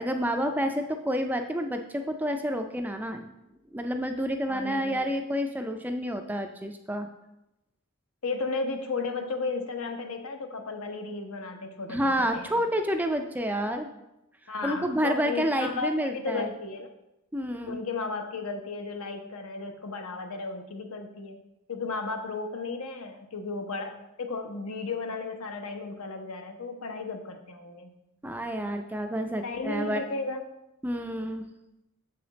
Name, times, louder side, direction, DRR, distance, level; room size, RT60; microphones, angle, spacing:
voice 1, 0.0-3.3 3.7-7.1 11.9-13.9 14.6-16.5 17.3-17.8 28.2-30.0 30.8-31.5, equal, 10° right, 6 dB, 0.3 m, -29 dB
voice 2, 4.5-5.1 8.2-12.6 14.5-16.9 17.7-21.4 21.7-27.9 29.4-30.5, left 3 dB, 75° left, 5 dB, 0.8 m, -34 dB
7.1 x 5.0 x 3.9 m, 0.91 s
head